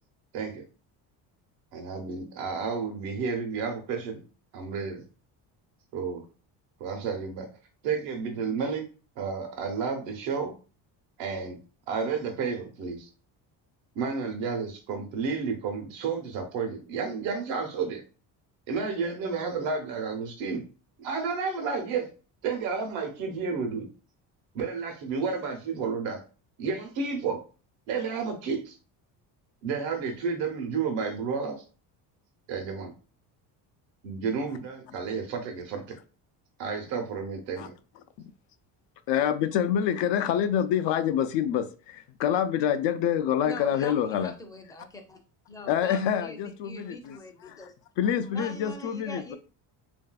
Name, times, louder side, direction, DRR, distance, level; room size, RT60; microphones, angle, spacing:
voice 1, 0.3-0.6 1.7-4.2 4.5-5.0 5.9-6.2 6.8-7.5 7.8-8.8 9.2-10.5 11.2-11.6 11.9-13.1 13.9-18.0 18.7-20.6 21.0-22.1 22.4-23.9 24.5-26.2 26.6-27.4 27.9-28.7 29.6-31.6 32.5-32.9 34.0-36.0 36.6-37.7, right 5 dB, 85° right, 0.9 m, -31 dB
voice 2, 39.1-44.3 45.7-47.2 47.4-47.6 48.0-49.4, left 9 dB, 70° left, 0.5 m, -26 dB
voice 3, 43.4-45.2 45.5-47.7 48.3-49.4, left 1 dB, 10° left, 0.4 m, -43 dB
3.2 x 2.6 x 2.3 m
cardioid pair, 105°, 44 cm